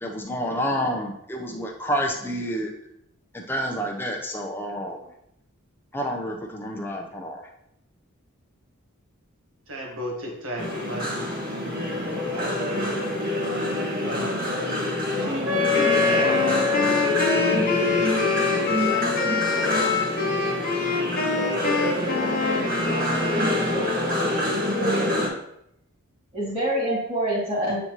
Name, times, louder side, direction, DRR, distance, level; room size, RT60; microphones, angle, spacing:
voice 1, 0.0-2.7 3.3-5.1 5.9-7.4, equal, 10° left, 0 dB, 0.8 m, -29 dB
voice 2, 9.7-11.3 11.8-12.0 12.3-13.0 14.0-14.4 15.2-18.7 19.1-19.9, equal, 70° right, -1 dB, 1.5 m, -36 dB
sound 1, 10.6-25.3, left 1 dB, 40° right, 1.5 m, -26 dB
Wind instrument woodwind instrument, 15.4-21.1, left 6 dB, 85° right, 1.0 m, -27 dB
Wind instrument woodwind instrument 2, 15.7-24.1, left 4 dB, 40° left, 1.0 m, -27 dB
voice 3, 24.1-25.0 26.3-27.8, right 1 dB, 20° right, -11 dB, 2.2 m, -27 dB
8.6 x 4.1 x 3.1 m, 0.76 s
head